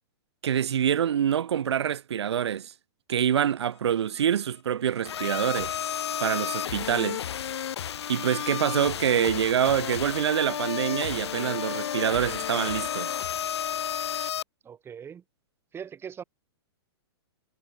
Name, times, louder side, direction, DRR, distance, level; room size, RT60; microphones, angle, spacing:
voice 1, 0.4-2.7 3.1-5.7 6.2-7.2 8.1-13.1, right 9 dB, 80° right, 3.3 m, -26 dB
sound 1, 5.0-14.4, left 9 dB, 80° left, 3.2 m, -32 dB
voice 2, 14.6-15.2 15.7-16.2, right 7 dB, 15° right, 4.3 m, -40 dB
hypercardioid pair, 140°, 14 cm